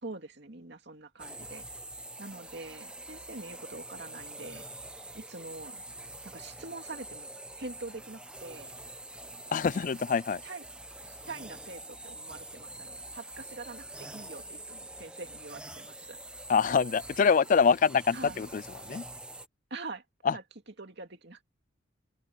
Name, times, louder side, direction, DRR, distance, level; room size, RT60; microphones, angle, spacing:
voice 1, 0.0-1.7 2.2-4.6 5.1-5.8 6.2-7.3 7.6-8.7 10.4-10.6 11.0-16.2 18.1-18.4 19.7-20.4 20.8-21.4, right 3 dB, 55° right, 2.6 m, -44 dB
sound 1, 1.2-19.5, right 2 dB, 5° right, 1.0 m, -45 dB
voice 2, 9.5-10.4 16.5-19.1 20.2-20.3, left 6 dB, 40° left, 0.3 m, -25 dB
open air
head